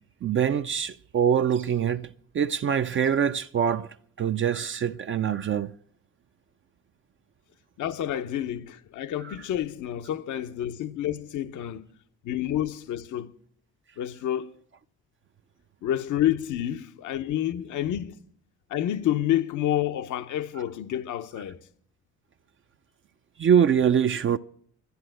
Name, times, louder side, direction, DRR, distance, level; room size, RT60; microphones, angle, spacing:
voice 1, 0.2-3.9 4.2-5.7 9.2-9.3 23.4-24.4, right 8 dB, 40° right, 0.5 m, -24 dB
voice 2, 7.8-11.8 12.2-13.3 14.0-14.5 15.8-18.1 18.7-21.6, left 11 dB, 80° left, 0.8 m, -29 dB
13.0 x 9.9 x 7.7 m
cardioid pair, 90°, 30 cm